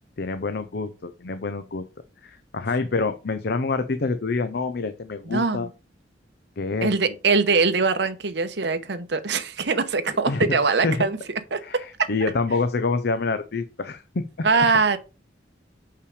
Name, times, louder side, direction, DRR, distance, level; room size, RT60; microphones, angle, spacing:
voice 1, 0.2-1.8 2.2-5.7 6.6-6.9 10.3-10.6 10.8-11.1 11.6-14.5, left 3 dB, 60° left, 0.7 m, -27 dB
voice 2, 5.3-5.7 6.8-11.2 11.5-11.6 14.4-15.0, right 4 dB, 70° right, 1.0 m, -22 dB
6.8 x 5.7 x 4.9 m
head